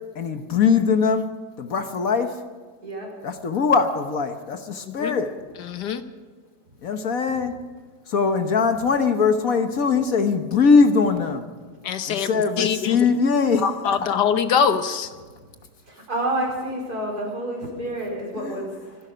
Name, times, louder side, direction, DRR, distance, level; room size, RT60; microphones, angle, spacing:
voice 1, 0.1-1.3 1.6-2.4 3.2-5.3 6.8-7.5 8.1-11.5 12.1-14.1 18.3-18.6, left 5 dB, 60° left, 7 dB, 1.4 m, -21 dB
voice 2, 5.7-6.0 11.8-12.3 12.6-13.0 13.6-15.1, left 7 dB, 80° left, 10 dB, 1.6 m, -23 dB
voice 3, 15.9-19.0, right 1 dB, 60° right, -1 dB, 5.2 m, -29 dB
25.0 x 11.0 x 5.1 m, 1.5 s
omnidirectional pair, 1.8 m